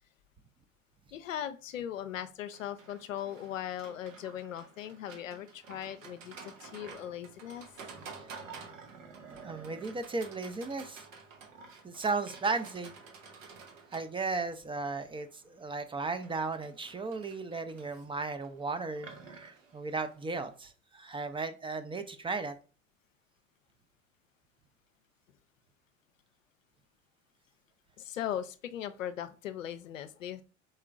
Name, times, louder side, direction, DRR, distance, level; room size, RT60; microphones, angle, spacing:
voice 1, 1.1-7.7 28.0-30.4, left 10 dB, 90° left, 11 dB, 0.5 m, -39 dB
Livestock farm animals working animals, 2.5-20.6, right 5 dB, 85° right, 0.9 m, -51 dB
voice 2, 9.3-11.0 11.8-12.9 13.9-22.6, right 3 dB, 15° right, 9 dB, 0.4 m, -35 dB
4.2 x 3.6 x 2.4 m, 0.36 s
hypercardioid pair, 75°, 38 cm